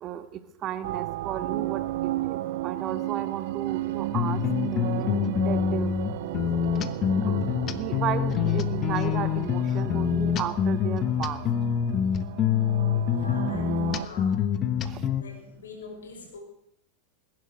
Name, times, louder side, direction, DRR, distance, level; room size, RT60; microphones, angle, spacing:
voice 1, 0.0-2.4 2.6-4.4 4.7-4.9 5.4-5.9 7.3-11.4 14.8-15.0, right 10 dB, 40° right, 11 dB, 1.5 m, -34 dB
sound 1, 0.8-14.1, right 16 dB, 60° right, 0.6 m, -34 dB
sound 2, 4.1-15.2, left 8 dB, 35° left, 1.1 m, -26 dB
voice 2, 13.1-14.4 15.1-16.4, left 3 dB, 75° left, 2 dB, 6.3 m, -44 dB
20.5 x 10.5 x 6.4 m, 0.73 s
hypercardioid pair, 90°, 0 cm